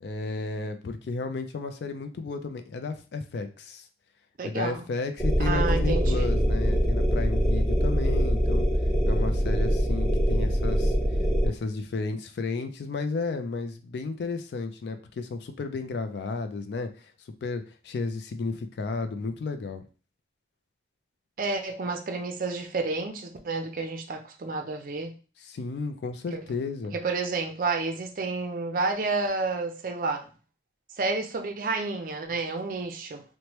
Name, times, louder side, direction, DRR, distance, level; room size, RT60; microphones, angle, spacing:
voice 1, 0.0-3.8 4.4-8.7 9.1-10.9 11.4-17.1 17.4-19.8 25.4-27.0, left 3 dB, 65° left, 8 dB, 0.3 m, -33 dB
voice 2, 4.4-4.8 5.4-6.3 21.4-25.1 26.3-26.4 26.9-30.3 31.0-33.2, right 3 dB, 45° right, 5 dB, 0.4 m, -30 dB
sound 1, 5.2-11.5, equal, ahead, 0.7 m, -24 dB
3.0 x 2.1 x 2.9 m, 0.35 s
head